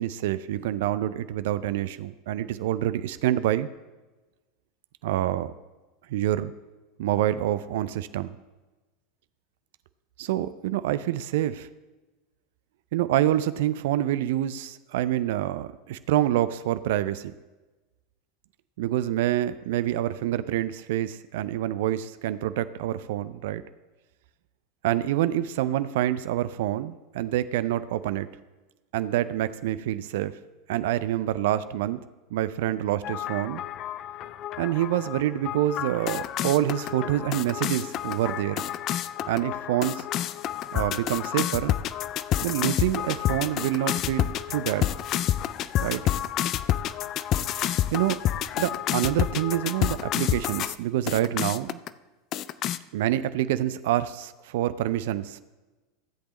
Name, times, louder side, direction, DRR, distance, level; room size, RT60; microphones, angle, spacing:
voice 1, 0.0-3.7 5.0-5.5 6.1-6.5 7.0-8.4 10.2-11.7 12.9-17.3 18.8-23.6 24.8-28.3 28.9-30.3 30.7-32.0 32.3-33.6 34.6-38.6 39.3-40.1 40.7-41.7 42.4-44.9 45.8-46.0 47.9-48.2 48.6-51.8 52.9-55.4, right 13 dB, 65° right, 14 dB, 0.4 m, -27 dB
sound 1, 33.0-50.8 51.1-51.9 52.3-52.8, left 12 dB, 45° left, 0.4 m, -29 dB
16.0 x 8.0 x 3.1 m, 1.1 s
hypercardioid pair, 85°, 0 cm